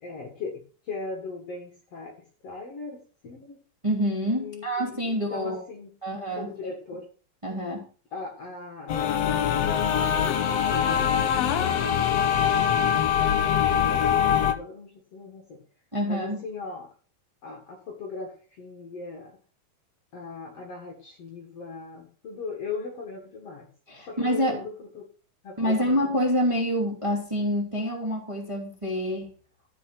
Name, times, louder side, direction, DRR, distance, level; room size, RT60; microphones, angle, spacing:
voice 1, 0.0-3.6 4.4-5.9 6.3-7.1 8.1-12.8 13.4-15.6 16.1-16.9 17.4-19.4 20.1-23.7 24.1-25.1 25.4-26.0, left 4 dB, 50° left, 1 dB, 2.3 m, -39 dB
voice 2, 3.8-5.6 6.0-6.7 7.4-7.8 15.9-16.4 23.9-24.6 25.6-29.3, equal, 10° right, 0 dB, 2.3 m, -27 dB
sound 1, 8.9-14.5, left 9 dB, 90° left, 1.4 m, -23 dB
13.5 x 5.8 x 6.0 m, 0.40 s
omnidirectional pair, 4.4 m